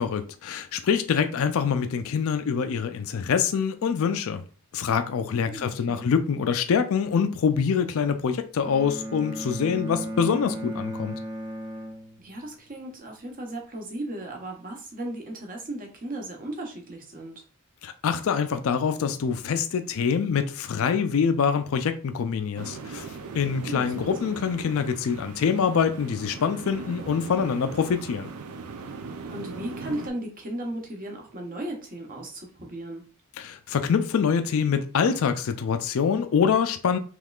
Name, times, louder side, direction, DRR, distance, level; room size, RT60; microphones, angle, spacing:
voice 1, 0.0-4.4 4.7-11.2 17.8-23.1 23.3-28.3 33.4-37.0, left 6 dB, 65° left, 0.4 m, -25 dB
voice 2, 5.4-6.1 12.2-17.4 23.7-23.9 24.2-24.5 29.3-33.0, right 1 dB, 40° right, 1.0 m, -36 dB
Bowed string instrument, 8.6-12.7, equal, 20° right, 0.6 m, -35 dB
sound 1, 22.6-30.1, right 4 dB, 80° right, 0.5 m, -39 dB
3.5 x 3.1 x 2.3 m
head